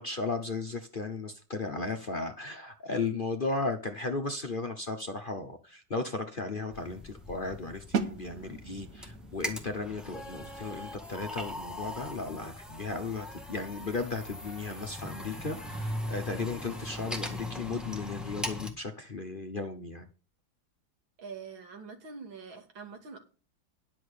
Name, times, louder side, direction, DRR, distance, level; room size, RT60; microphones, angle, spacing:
voice 1, 0.0-20.1, left 3 dB, 40° left, 0.8 m, -35 dB
sound 1, 6.7-18.7, left 1 dB, ahead, 1.6 m, -40 dB
sound 2, 7.9-13.7, right 5 dB, 50° right, 1.4 m, -40 dB
voice 2, 21.2-23.2, right 5 dB, 80° right, 3.0 m, -44 dB
10.5 x 6.0 x 6.5 m
omnidirectional pair, 2.1 m